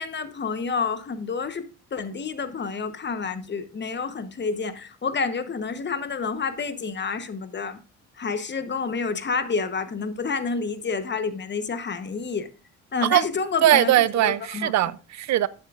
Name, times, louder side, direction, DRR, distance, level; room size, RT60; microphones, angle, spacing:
voice 1, 0.0-1.6 1.9-7.8 8.2-12.5 12.9-14.7, left 5 dB, 35° left, 1.1 m, -29 dB
voice 2, 13.6-15.5, right 13 dB, 65° right, 0.5 m, -20 dB
12.0 x 8.4 x 2.5 m
cardioid pair, 90°, 30 cm